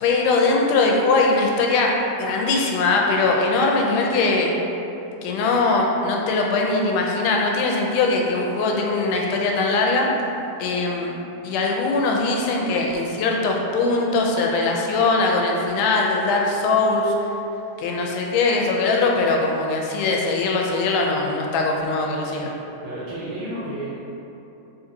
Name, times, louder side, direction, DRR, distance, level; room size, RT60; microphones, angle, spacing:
voice 1, 0.0-4.6 5.2-10.1 10.6-11.2 11.4-17.2 17.8-22.5, left 3 dB, 85° left, 0 dB, 2.1 m, -21 dB
voice 2, 22.8-24.0, right 1 dB, 75° right, -9 dB, 1.7 m, -31 dB
4.6 x 3.8 x 2.6 m, 3.0 s
omnidirectional pair, 3.7 m